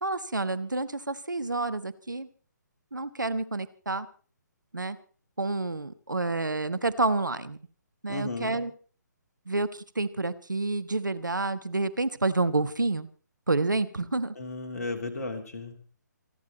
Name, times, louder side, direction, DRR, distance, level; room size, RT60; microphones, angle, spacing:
voice 1, 0.0-2.3 2.9-4.1 4.7-5.0 5.4-7.6 8.0-8.7 9.5-13.1 13.5-14.3, right 3 dB, 75° right, 13 dB, 1.3 m, -29 dB
voice 2, 8.1-8.6 14.3-16.0, left 3 dB, 55° left, 4 dB, 3.0 m, -35 dB
27.0 x 9.7 x 4.1 m, 0.41 s
figure-of-eight pair, 140°, 10 cm